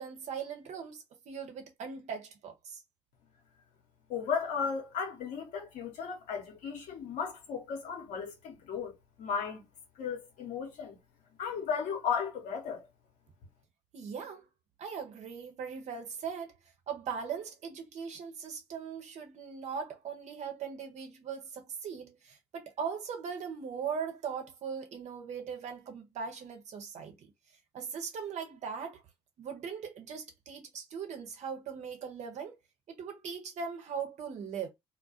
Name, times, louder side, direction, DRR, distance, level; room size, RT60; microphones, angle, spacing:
voice 1, 0.0-2.8 13.9-14.4 14.8-16.5 16.9-27.3 27.7-29.0 29.4-32.6 32.9-34.7, right 6 dB, 55° right, 0.8 m, -39 dB
voice 2, 4.1-8.9 9.2-9.7 10.0-11.0 11.4-12.9, left 6 dB, 65° left, 0.9 m, -35 dB
2.3 x 2.1 x 2.6 m
hypercardioid pair, 50°, 14 cm